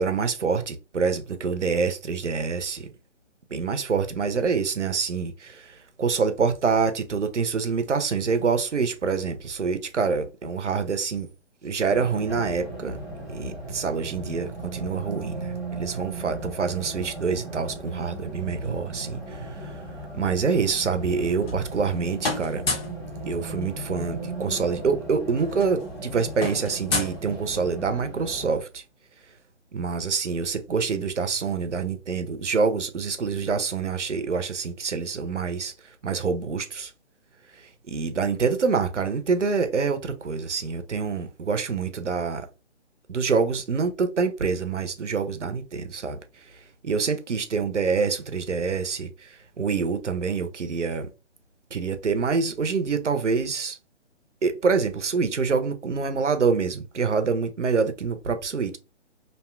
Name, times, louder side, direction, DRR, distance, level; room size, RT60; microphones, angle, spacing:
voice 1, 0.0-2.9 3.5-11.3 11.6-13.0 13.3-19.7 20.1-22.6 23.3-28.8 29.7-35.7 36.0-36.9 37.9-42.5 43.1-46.2 46.8-49.3 49.6-51.1 51.7-53.8 54.4-58.8, right 5 dB, 90° right, 0.6 m, -26 dB
Race car auto racing, 11.9-28.5, right 2 dB, 15° left, 0.5 m, -37 dB
sound 1, 21.2-21.9 22.2-23.0 24.4-24.5 24.7-24.9 25.2-27.9, left 3 dB, 55° left, 0.8 m, -31 dB
2.6 x 2.1 x 2.3 m
figure-of-eight pair, 135°, 35 cm